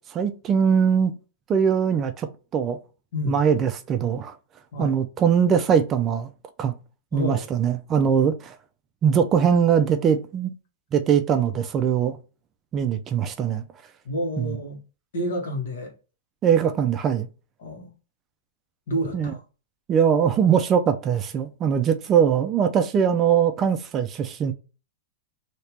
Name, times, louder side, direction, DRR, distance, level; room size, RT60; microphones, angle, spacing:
voice 1, 0.1-1.1 1.5-2.8 3.3-4.3 4.8-6.3 6.6-6.7 7.1-8.6 9.0-10.5 10.9-12.2 12.7-13.6 14.4-14.6 16.4-17.3 19.1-19.3 19.9-24.5, right 7 dB, 20° right, 0.3 m, -21 dB
voice 2, 7.1-7.4 14.0-14.8 15.1-15.9 17.6-17.9 18.9-19.4, equal, 70° left, 1.5 m, -29 dB
3.3 x 2.8 x 2.9 m
supercardioid pair, 160°, 0 cm